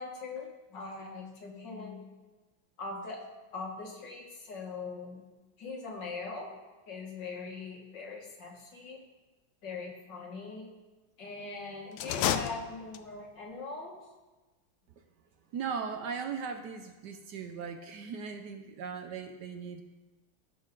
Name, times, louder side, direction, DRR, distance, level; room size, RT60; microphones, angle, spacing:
voice 1, 0.0-2.0 2.8-3.2 3.5-5.2 5.6-6.5 6.9-9.0 9.6-10.7 11.2-14.0, left 4 dB, 65° left, 0 dB, 2.3 m, -41 dB
sound 1, 11.9-13.3, left 10 dB, 85° left, 1.4 m, -32 dB
voice 2, 15.5-19.8, right 6 dB, 65° right, 6 dB, 1.2 m, -38 dB
16.0 x 6.8 x 3.8 m, 1.2 s
omnidirectional pair, 2.1 m